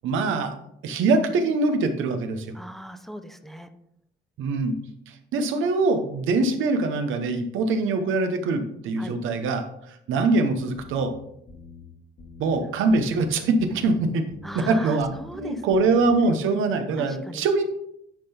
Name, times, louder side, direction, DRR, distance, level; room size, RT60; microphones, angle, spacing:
voice 1, 0.0-0.6 0.8-2.5 4.4-4.7 5.1-11.1 12.4-14.2 14.5-17.6, right 3 dB, 85° right, 7 dB, 1.0 m, -23 dB
voice 2, 2.5-3.7 9.0-9.2 12.6-12.7 14.4-15.6 17.0-17.4, equal, ahead, 8 dB, 0.7 m, -38 dB
sound 1, 10.8-11.1 11.5-11.8 12.2-12.5 12.9-13.2 13.6-14.0 14.3-14.7 15.0-15.4 15.7-16.1, left 2 dB, 70° left, 2.2 m, -45 dB
10.0 x 3.9 x 4.3 m, 0.76 s
cardioid pair, 90°, 20 cm